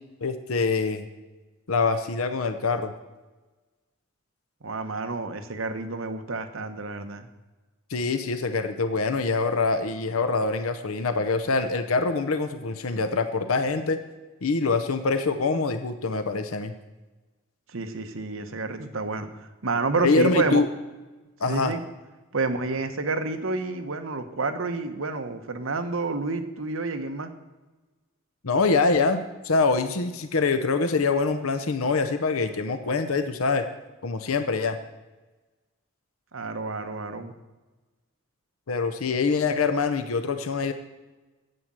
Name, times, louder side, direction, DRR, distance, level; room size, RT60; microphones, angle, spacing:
voice 1, 0.2-1.1 1.7-2.9 7.9-14.0 14.4-16.7 20.0-20.7 21.4-21.7 28.4-29.2 29.4-33.6 34.0-34.8 38.7-40.7, left 4 dB, 90° left, 9 dB, 0.8 m, -24 dB
voice 2, 4.6-7.3 17.7-19.3 19.6-20.6 21.5-21.8 22.3-27.3 36.3-37.3, right 3 dB, 75° right, 7 dB, 1.1 m, -29 dB
9.4 x 8.7 x 7.5 m, 1.2 s
head